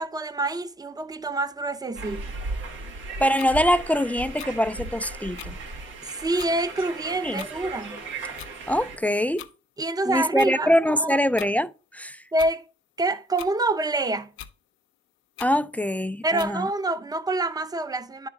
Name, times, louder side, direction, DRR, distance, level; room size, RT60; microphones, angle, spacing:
voice 1, 0.0-2.2 6.0-8.0 9.8-11.2 12.3-12.7 13.0-14.3 16.2-18.3, right 2 dB, 20° right, 0.7 m, -27 dB
sound 1, 1.9-9.0, right 3 dB, 85° right, 1.8 m, -36 dB
voice 2, 3.2-5.6 7.2-7.4 8.7-9.5 10.1-12.2 15.4-16.7, equal, 5° left, 0.3 m, -23 dB
sound 2, 3.4-3.5 4.4-4.5 5.4-5.5 6.4-6.5 7.4-7.5 8.4-8.5 9.4-9.5 10.4-10.5 11.4-11.5 12.4-12.5 13.4-13.5 14.4-14.5 15.4-15.5 16.4-16.5, left 12 dB, 85° left, 0.6 m, -40 dB
10.5 x 3.5 x 3.6 m
cardioid pair, 90°, 20 cm